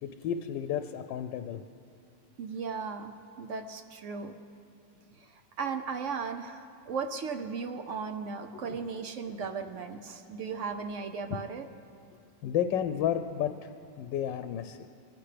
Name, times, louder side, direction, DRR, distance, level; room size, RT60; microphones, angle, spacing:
voice 1, 0.0-1.6 8.5-8.8 11.3-11.4 12.4-13.7 14.0-14.9, left 9 dB, 85° left, 9 dB, 1.2 m, -32 dB
voice 2, 2.4-4.4 5.1-11.7, right 5 dB, 65° right, 6 dB, 0.7 m, -36 dB
23.5 x 15.5 x 3.4 m, 2.5 s
omnidirectional pair, 1.9 m